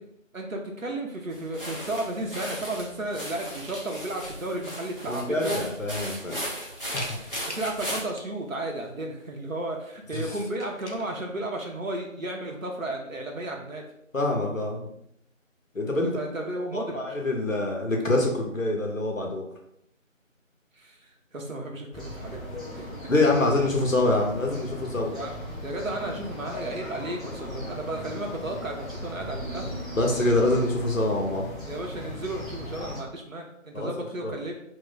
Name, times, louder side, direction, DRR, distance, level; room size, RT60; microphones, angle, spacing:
voice 1, 0.3-5.7 7.5-13.8 16.1-17.0 20.8-21.0 21.3-23.1 25.1-25.3 25.6-29.7 31.6-34.5, right 1 dB, 75° right, 1 dB, 0.8 m, -33 dB
sound 1, 1.3-8.0, equal, 45° right, 0.9 m, -37 dB
sound 2, 4.2-4.8 5.4-5.5 6.0-6.4 6.8-8.5 9.9-10.2 10.4-11.0, left 1 dB, 60° left, 0.6 m, -42 dB
voice 2, 5.1-6.4 6.9-7.2 10.1-10.4 14.1-14.9 15.7-16.2 16.7-19.4 23.1-25.1 29.6-31.5 33.7-34.4, left 2 dB, 75° left, 1 dB, 1.0 m, -26 dB
sound 3, 21.9-33.0, left 1 dB, ahead, 0.8 m, -38 dB
3.0 x 2.2 x 3.8 m, 0.75 s
figure-of-eight pair, 180°, 40 cm